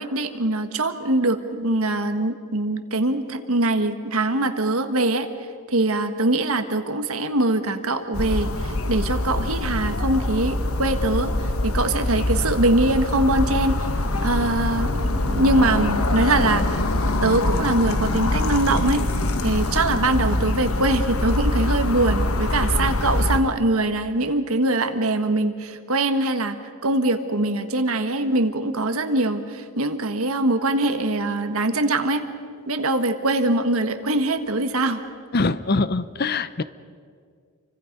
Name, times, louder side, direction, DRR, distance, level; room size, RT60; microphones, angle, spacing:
voice 1, 0.0-5.3 5.7-13.9 14.2-16.8 17.2-19.0 19.4-26.6 26.8-32.2 32.7-35.0, right 2 dB, 75° right, 8 dB, 1.6 m, -23 dB
sound 1, 8.1-23.4, left 2 dB, 75° left, 1.2 m, -24 dB
voice 2, 35.3-36.6, left 3 dB, 45° left, 15 dB, 0.7 m, -23 dB
28.5 x 24.5 x 5.4 m, 2.1 s
head